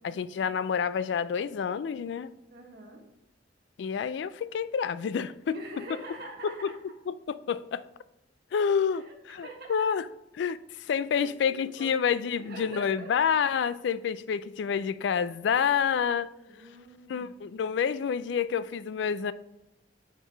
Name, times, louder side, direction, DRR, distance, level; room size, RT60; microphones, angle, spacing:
voice 1, 0.0-2.3 3.8-5.6 6.4-6.5 7.1-7.8 8.5-10.1 10.4-16.3 17.1-19.3, left 7 dB, 70° left, 0.3 m, -28 dB
voice 2, 2.5-3.0 5.5-6.8 9.0-9.8 10.8-12.0 12.4-13.1 16.5-17.3, right 1 dB, 60° right, 1.3 m, -45 dB
4.9 x 4.5 x 4.5 m
head